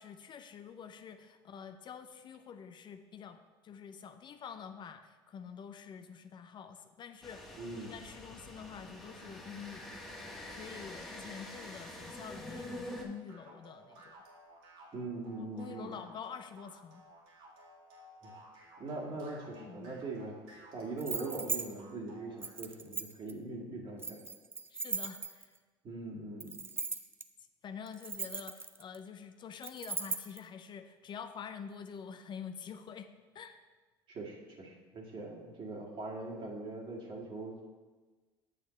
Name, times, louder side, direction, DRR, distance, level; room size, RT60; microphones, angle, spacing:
voice 1, 0.0-9.9 10.5-14.2 15.4-17.0 19.6-20.0 24.7-25.6 27.6-33.1 33.3-33.6, left 7 dB, 40° left, 8 dB, 0.5 m, -47 dB
sound 1, 7.2-13.1, left 1 dB, 5° left, 1.6 m, -46 dB
voice 2, 7.6-7.9 14.9-15.9 18.2-18.3 18.8-20.4 20.7-24.2 25.8-26.6 34.1-37.7, right 2 dB, 45° right, -2 dB, 2.0 m, -41 dB
sound 2, 13.3-22.6, right 1 dB, 70° right, 2.3 m, -56 dB
sound 3, 21.0-21.7 22.4-23.3 24.0-25.6 26.4-27.2 27.9-29.0 29.6-30.4, right 4 dB, 20° right, 0.5 m, -38 dB
8.2 x 7.1 x 3.2 m, 1.3 s
hypercardioid pair, 80°, 12 cm